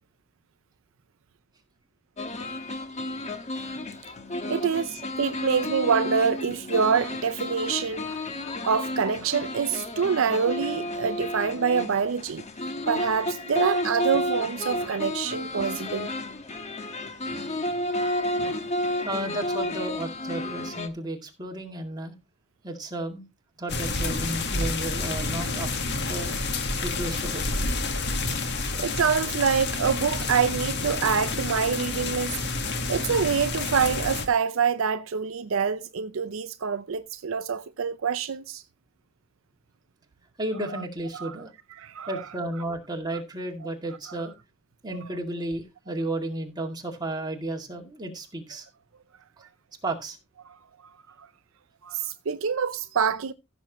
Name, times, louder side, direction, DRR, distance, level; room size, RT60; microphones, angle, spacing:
sound 1, 2.2-20.9, left 1 dB, 35° left, 1.2 m, -32 dB
voice 1, 4.5-8.3 8.6-12.4 12.9-16.1 17.3-17.5 18.4-18.7 28.7-32.4 32.9-38.6 40.6-40.8 41.1-41.4 41.8-42.2 50.5-50.6 51.2-51.3 51.8-53.3, right 6 dB, 70° right, 0.5 m, -26 dB
voice 2, 19.1-22.1 22.6-23.2 23.6-25.8 26.1-26.3 26.8-27.4 28.4-28.5 40.4-41.5 42.1-44.3 44.8-48.7 49.8-50.2, right 1 dB, 20° right, 2.3 m, -33 dB
sound 2, 23.7-34.3, left 3 dB, 55° left, 1.6 m, -29 dB
15.5 x 7.0 x 3.0 m
head